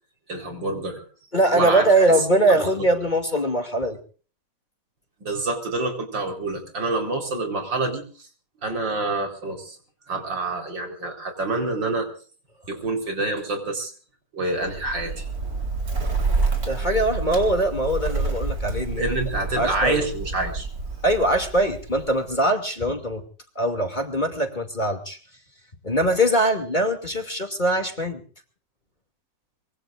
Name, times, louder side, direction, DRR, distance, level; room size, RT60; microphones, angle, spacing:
voice 1, 0.3-1.0 1.5-2.1 2.5-2.6 5.2-8.0 8.6-9.8 10.1-12.1 12.7-13.9 14.3-15.2 19.0-20.7, right 2 dB, 70° right, 5 dB, 4.9 m, -27 dB
voice 2, 1.3-4.0 16.7-19.1 19.5-20.0 21.0-23.2 23.6-25.2 25.8-28.2, right 1 dB, 25° left, 5 dB, 2.6 m, -22 dB
Bird, 14.6-22.4, right 3 dB, 50° right, 4.3 m, -28 dB
24.5 x 23.0 x 2.5 m, 0.41 s
omnidirectional pair, 2.1 m